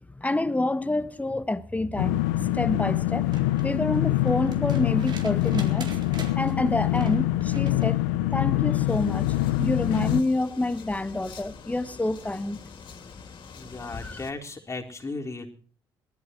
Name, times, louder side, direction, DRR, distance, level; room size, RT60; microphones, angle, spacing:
voice 1, 0.2-3.4 3.6-5.9 6.4-8.0 8.3-12.6 14.0-14.2, left 2 dB, 15° left, 1.4 m, -28 dB
sound 1, 2.0-10.2, left 15 dB, 90° left, 0.8 m, -25 dB
sound 2, 3.1-8.0 9.6-9.7, right 4 dB, 45° right, 3.9 m, -45 dB
sound 3, 8.9-14.3, left 5 dB, 55° left, 3.4 m, -45 dB
voice 2, 13.5-15.5, left 3 dB, 30° left, 4.3 m, -36 dB
19.0 x 13.5 x 4.7 m
hypercardioid pair, 60°, 10 cm